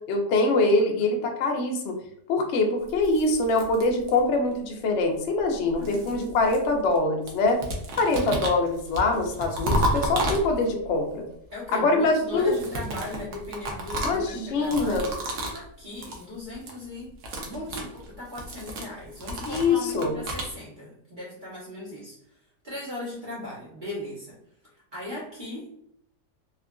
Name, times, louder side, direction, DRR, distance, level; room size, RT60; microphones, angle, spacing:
voice 1, 0.1-1.9 2.3-7.6 8.0-11.3 11.7-12.5 14.0-15.0 19.5-20.1, left 2 dB, 70° left, 2 dB, 0.6 m, -24 dB
voice 2, 0.7-1.2 5.8-6.4 11.5-15.1 15.5-17.1 17.4-22.2 22.6-24.4 24.9-25.7, left 2 dB, 35° right, -7 dB, 0.9 m, -38 dB
sound 1, 2.9-4.5 5.4-7.0 7.3-10.9 12.3-15.7 15.9-16.3 16.5-16.8 17.1-20.5, right 1 dB, 70° right, 1.1 m, -32 dB
3.5 x 2.4 x 2.2 m, 0.73 s
omnidirectional pair, 1.9 m